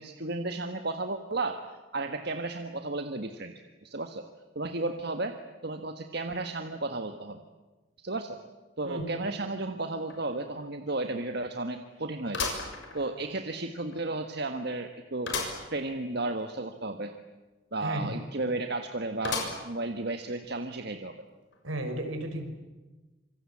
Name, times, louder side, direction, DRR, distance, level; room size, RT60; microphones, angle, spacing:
voice 1, 0.0-1.6 1.9-3.5 3.8-4.3 4.5-7.4 8.0-8.4 8.8-12.5 12.9-17.1 17.7-21.1, right 2 dB, 50° right, 6 dB, 1.5 m, -33 dB
voice 2, 8.8-9.3 17.8-18.2 21.6-22.5, right 1 dB, 75° right, 6 dB, 5.4 m, -34 dB
sound 1, 10.1-10.2 10.6-10.7 12.3-13.4 13.9-14.0 15.3-15.7 16.1-16.2 16.4-16.5 19.2-19.9 20.4-20.5 21.5-21.6, left 4 dB, 60° left, 6.5 m, -34 dB
27.0 x 24.5 x 8.6 m, 1.2 s
head